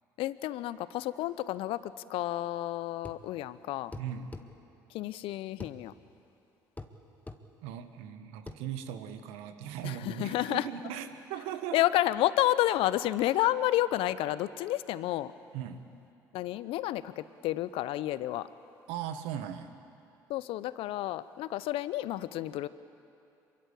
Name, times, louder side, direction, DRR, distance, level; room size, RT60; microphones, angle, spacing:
voice 1, 0.2-3.9 4.9-5.9 9.8-10.7 11.7-15.3 16.3-18.5 20.3-22.7, left 14 dB, 65° left, 16 dB, 0.8 m, -30 dB
sound 1, 3.0-3.3 3.9-4.5 5.6-5.8 6.8-7.0 7.3-7.4 8.5-8.6, left 2 dB, 15° left, 1.8 m, -43 dB
voice 2, 3.9-4.3 7.6-11.8 15.5-15.8 18.9-19.7, right 9 dB, 70° right, 9 dB, 1.6 m, -38 dB
26.5 x 23.5 x 8.6 m, 2.7 s
hypercardioid pair, 60°, 10 cm